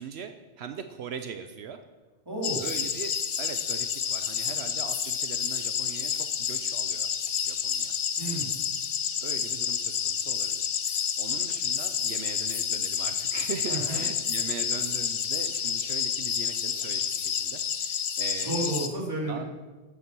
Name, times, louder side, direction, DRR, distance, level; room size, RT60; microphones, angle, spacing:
voice 1, 0.0-1.8 2.6-7.1 7.4-8.0 9.2-18.7 19.3-19.5, right 7 dB, 80° right, 8 dB, 1.0 m, -40 dB
voice 2, 2.2-2.6 5.0-5.3 8.2-8.5 13.7-14.0 18.4-19.5, right 2 dB, 20° right, -3 dB, 3.2 m, -32 dB
sound 1, 2.4-18.9, left 7 dB, 65° left, 1.0 m, -29 dB
14.5 x 8.5 x 6.1 m, 1.3 s
omnidirectional pair, 1.1 m